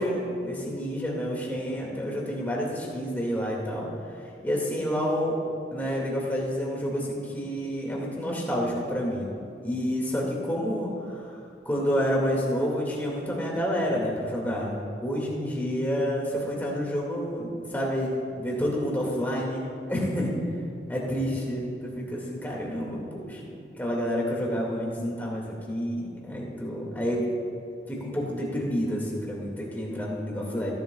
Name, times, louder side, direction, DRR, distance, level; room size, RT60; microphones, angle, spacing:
voice 1, 0.0-3.9 4.4-5.3 5.7-9.3 9.6-10.9 11.7-20.3 20.9-27.3 27.9-30.7, equal, 10° left, -3 dB, 2.0 m, -29 dB
16.0 x 11.5 x 2.3 m, 2.6 s
head